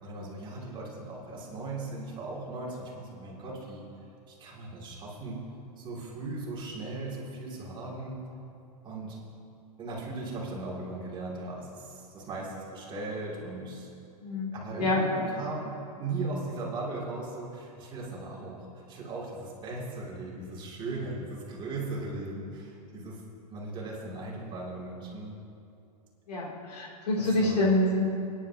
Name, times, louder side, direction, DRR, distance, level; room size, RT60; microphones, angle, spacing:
voice 1, 0.0-3.9 4.3-5.5 5.8-8.2 8.8-9.2 9.8-13.9 14.5-23.2 23.5-25.4 27.2-27.7, right 2 dB, 25° right, -4 dB, 2.7 m, -38 dB
voice 2, 14.2-14.5 14.8-15.0 26.3-28.0, left 2 dB, 80° left, -2 dB, 3.0 m, -26 dB
24.5 x 10.5 x 2.9 m, 2.6 s
hypercardioid pair, 130°, 20 cm